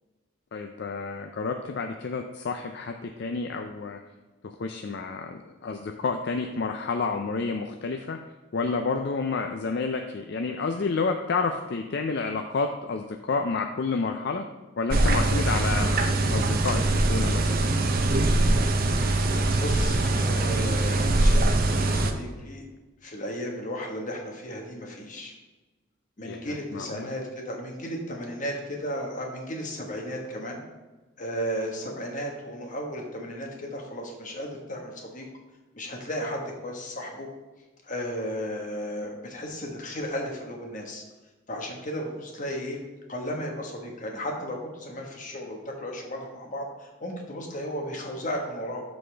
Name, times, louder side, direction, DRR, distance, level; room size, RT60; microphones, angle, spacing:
voice 1, 0.5-4.0 4.4-8.2 8.5-14.4 14.8-17.6 26.2-27.1, left 4 dB, 55° left, 5 dB, 0.4 m, -30 dB
sound 1, 14.9-22.1, right 2 dB, 45° right, 0.6 m, -23 dB
voice 2, 19.3-22.6 23.0-25.3 26.2-30.6 31.2-35.3 35.7-37.3 37.8-41.0 41.5-42.8 43.1-48.8, equal, 40° left, 1 dB, 1.3 m, -34 dB
12.5 x 4.2 x 3.4 m, 1.2 s
head